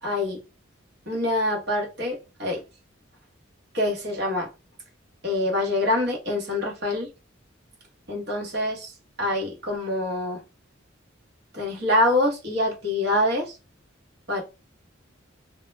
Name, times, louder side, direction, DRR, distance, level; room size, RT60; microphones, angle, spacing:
voice 1, 0.0-0.4 1.1-2.6 3.7-4.5 5.2-7.1 8.1-10.4 11.5-13.6 14.3-14.4, left 1 dB, 50° right, 0.9 m, -25 dB
2.2 x 2.1 x 3.0 m
head